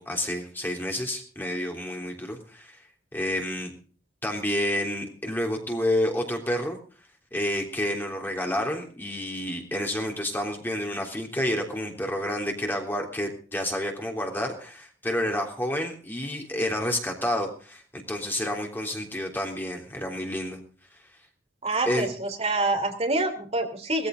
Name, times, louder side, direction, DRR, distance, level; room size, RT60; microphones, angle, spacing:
voice 1, 0.0-2.8 3.1-3.7 4.2-6.8 7.3-20.6 21.8-22.1, left 1 dB, 10° left, 2 dB, 3.4 m, -29 dB
voice 2, 21.6-24.1, right 2 dB, 35° right, 4 dB, 3.2 m, -26 dB
19.5 x 14.5 x 3.8 m, 0.41 s
head